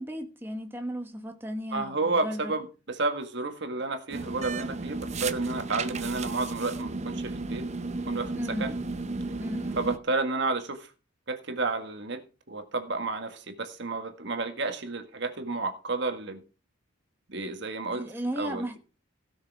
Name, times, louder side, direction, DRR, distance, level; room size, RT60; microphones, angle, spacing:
voice 1, 0.0-2.5 8.3-8.7 9.4-9.8 17.9-18.8, equal, 10° right, 1.3 m, -35 dB
voice 2, 1.7-7.7 8.1-8.7 9.8-10.9 11.3-16.4 17.3-18.0 18.3-18.8, right 3 dB, 60° right, 1.6 m, -31 dB
sound 1, 4.1-10.0, right 3 dB, 35° right, 0.7 m, -34 dB
16.5 x 6.4 x 4.7 m
head